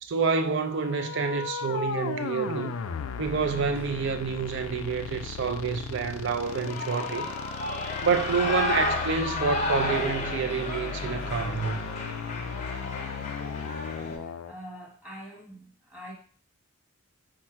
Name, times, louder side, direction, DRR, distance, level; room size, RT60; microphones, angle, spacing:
voice 1, 0.1-2.8 3.2-7.3 8.0-11.8, right 5 dB, 60° right, 0.5 m, -28 dB
sound 1, 0.6-14.5, left 6 dB, 80° left, 0.4 m, -36 dB
Shout / Cheering, 6.4-14.2, left 2 dB, 35° left, 0.7 m, -32 dB
voice 2, 14.2-16.1, equal, 5° right, 1.3 m, -45 dB
4.4 x 2.4 x 4.4 m
head